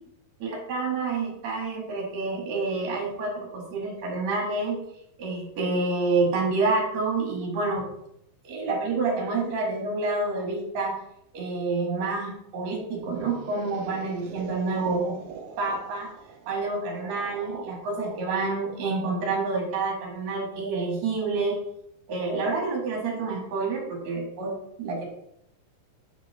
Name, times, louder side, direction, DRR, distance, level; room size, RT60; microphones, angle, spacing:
voice 1, 0.4-4.8 5.2-7.9 8.4-11.0 11.3-15.2 15.6-16.1 16.5-21.6 22.1-25.0, right 3 dB, 50° right, 0 dB, 2.8 m, -28 dB
sound 1, 12.8-19.7, right 4 dB, 75° right, 1.8 m, -43 dB
7.4 x 5.8 x 3.5 m, 0.76 s
omnidirectional pair, 4.5 m